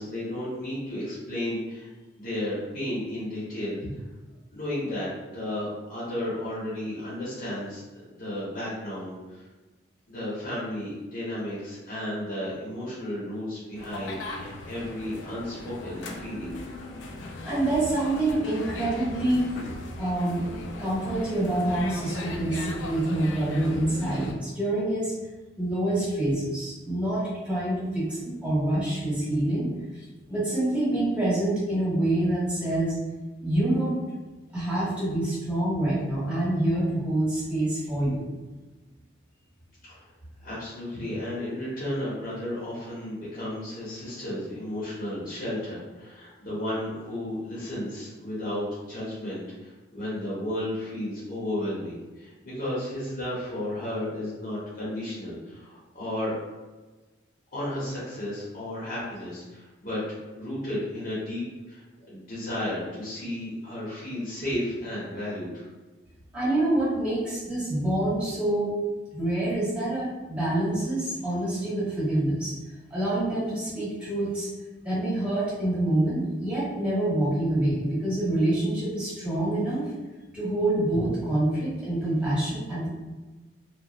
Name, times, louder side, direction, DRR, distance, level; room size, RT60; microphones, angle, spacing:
voice 1, 0.0-1.9 2.2-3.9 4.5-7.8 8.1-9.5 10.1-16.5 39.9-40.1 40.4-56.4 57.5-60.0 60.4-61.4 61.7-65.7, left 1 dB, 45° left, -9 dB, 0.9 m, -33 dB
sound 1, 13.8-24.3, left 2 dB, 70° left, 0.3 m, -38 dB
voice 2, 17.4-19.5 20.0-20.4 20.8-25.1 25.6-29.7 30.3-32.9 33.4-34.0 34.5-38.2 66.3-68.7 69.1-72.5 72.9-74.5 74.8-79.8 80.3-82.9, right 1 dB, 5° right, -10 dB, 1.1 m, -26 dB
2.9 x 2.1 x 2.4 m, 1.2 s
head